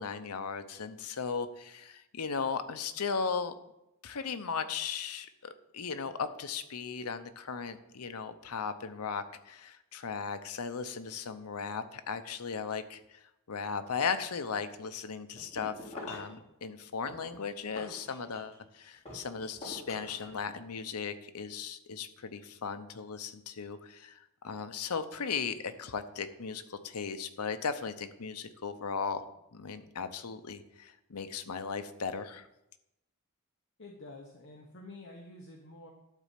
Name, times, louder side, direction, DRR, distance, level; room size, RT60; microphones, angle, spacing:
voice 1, 0.0-3.5 4.0-13.2 13.5-24.2 24.4-29.2 29.5-32.5, left 5 dB, 85° left, 9 dB, 0.8 m, -37 dB
sound 1, 15.4-16.4 17.1-18.6 19.1-20.4, left 1 dB, 30° left, 3.9 m, -45 dB
voice 2, 33.8-35.9, left 2 dB, 55° left, 0 dB, 1.1 m, -49 dB
11.5 x 4.1 x 7.4 m, 0.87 s
head